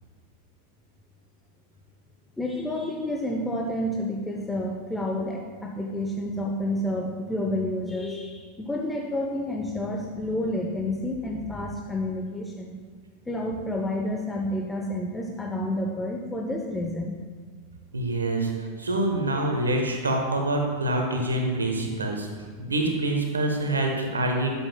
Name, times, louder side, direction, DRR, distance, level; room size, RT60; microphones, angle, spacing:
voice 1, 2.4-12.7 13.3-17.2 22.3-22.9, left 1 dB, 10° left, 0 dB, 0.8 m, -30 dB
voice 2, 17.9-18.5 18.8-22.3 22.6-24.6, right 1 dB, 85° right, 2 dB, 1.1 m, -26 dB
11.5 x 7.2 x 2.3 m, 1.6 s
figure-of-eight pair, 90°, 0 cm